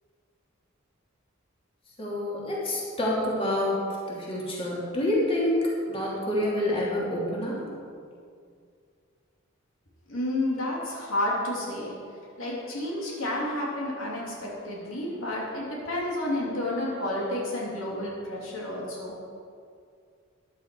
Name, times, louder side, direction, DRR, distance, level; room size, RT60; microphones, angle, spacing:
voice 1, 2.0-3.8 4.2-5.6 5.9-7.7, left 1 dB, 30° left, -5 dB, 3.1 m, -27 dB
voice 2, 10.1-19.2, left 1 dB, 80° left, -4 dB, 3.3 m, -31 dB
15.0 x 11.0 x 4.8 m, 2.3 s
head